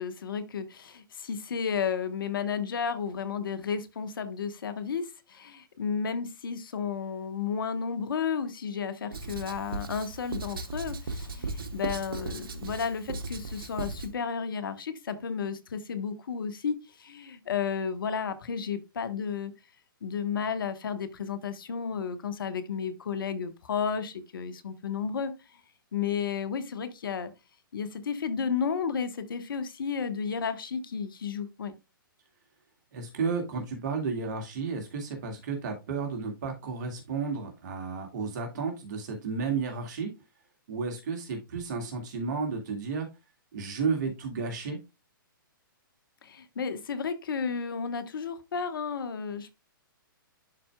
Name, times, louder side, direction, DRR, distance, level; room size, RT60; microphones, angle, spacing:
voice 1, 0.0-19.5 20.0-25.3 25.9-27.3 27.7-31.7 46.2-49.5, left 6 dB, 70° left, 1.2 m, -32 dB
Writing, 9.1-14.1, right 3 dB, 80° right, 1.1 m, -37 dB
voice 2, 32.9-40.1 40.7-43.1 43.5-44.8, right 5 dB, 55° right, 1.9 m, -32 dB
11.0 x 4.3 x 2.2 m
hypercardioid pair, 130°, 12 cm